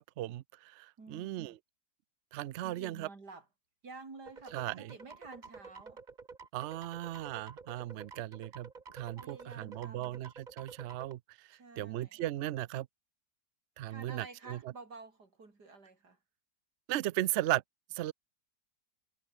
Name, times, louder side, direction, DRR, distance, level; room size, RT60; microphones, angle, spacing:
voice 1, 0.0-1.6 2.3-3.1 4.5-4.9 6.5-12.9 13.8-14.6 16.9-17.6 17.9-18.1, right 15 dB, 70° right, 0.6 m, -37 dB
voice 2, 1.0-1.6 2.6-3.5 3.8-6.0 9.2-10.2 11.5-12.2 13.9-16.2, right 3 dB, 85° right, 4.5 m, -51 dB
sound 1, 4.3-11.1, right 4 dB, 30° right, 1.3 m, -50 dB
omnidirectional pair, 1.7 m